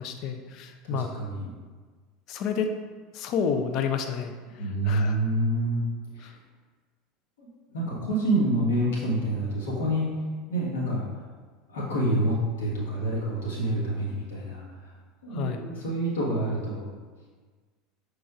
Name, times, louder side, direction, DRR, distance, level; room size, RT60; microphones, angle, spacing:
voice 1, 0.0-1.1 2.3-2.7 3.1-4.3 4.8-5.2 6.2-6.3 15.3-15.6, left 6 dB, 45° left, 7 dB, 0.4 m, -29 dB
voice 2, 0.8-1.5 4.6-5.8 7.4-7.5 7.7-10.1 10.5-11.1 11.7-14.6 15.2-16.9, right 1 dB, 70° left, -4 dB, 1.1 m, -27 dB
6.1 x 3.2 x 2.3 m, 1.5 s
figure-of-eight pair, 75°, 0 cm